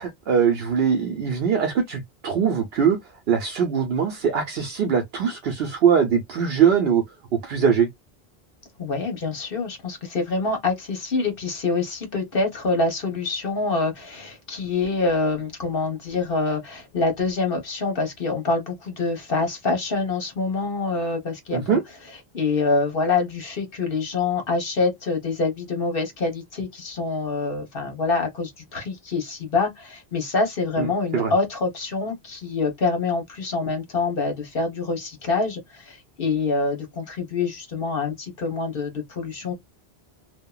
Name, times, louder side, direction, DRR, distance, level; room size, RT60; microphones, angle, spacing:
voice 1, 0.0-3.0 3.3-7.0 7.3-7.9 21.5-21.8 30.8-30.9 31.1-31.3, right 7 dB, 75° right, 0.9 m, -21 dB
voice 2, 8.8-21.8 22.3-39.5, left 3 dB, 60° left, 1.3 m, -26 dB
2.8 x 2.3 x 2.3 m
omnidirectional pair, 1.0 m